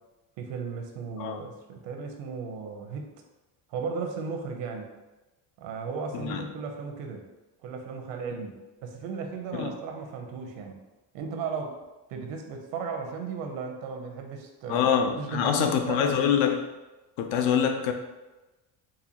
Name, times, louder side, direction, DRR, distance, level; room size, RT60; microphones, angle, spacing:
voice 1, 0.4-3.1 3.7-4.9 5.6-7.2 7.6-10.8 11.1-11.8 12.1-14.9 15.2-16.2, right 5 dB, 80° right, 4 dB, 0.7 m, -35 dB
voice 2, 6.1-6.5 9.5-9.7 14.7-16.6 17.2-17.9, left 8 dB, 80° left, 5 dB, 0.6 m, -25 dB
4.1 x 2.5 x 2.8 m, 1.1 s
cardioid pair, 160°, 43 cm